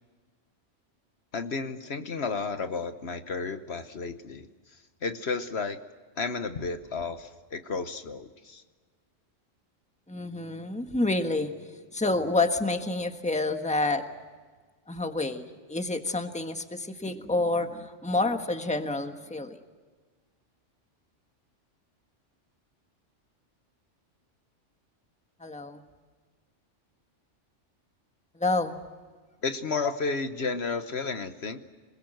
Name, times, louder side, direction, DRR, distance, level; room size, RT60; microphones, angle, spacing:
voice 1, 1.3-5.8 6.2-8.6 29.4-31.7, left 4 dB, 60° left, 9 dB, 1.3 m, -32 dB
voice 2, 10.1-14.0 14.9-19.6 25.4-25.8 28.3-28.8, left 2 dB, 5° left, 6 dB, 1.4 m, -28 dB
27.0 x 21.0 x 7.8 m, 1.4 s
omnidirectional pair, 1.3 m